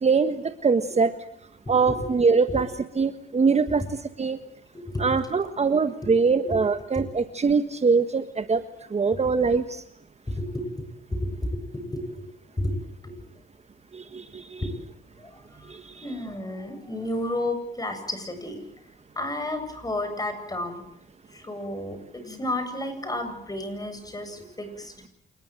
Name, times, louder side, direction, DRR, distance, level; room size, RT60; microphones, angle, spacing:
voice 1, 0.0-1.1 1.7-2.7 2.9-4.4 5.0-8.6 8.9-9.8 13.9-14.6 15.7-16.1, right 5 dB, 35° right, 10 dB, 1.4 m, -23 dB
voice 2, 10.4-12.0 12.6-12.7 13.0-13.2 14.6-14.7 15.2-15.7 16.0-18.6 19.2-20.8 21.3-24.9, left 1 dB, 20° left, 8 dB, 8.0 m, -32 dB
27.5 x 21.0 x 7.8 m, 0.72 s
cardioid pair, 90°, 20 cm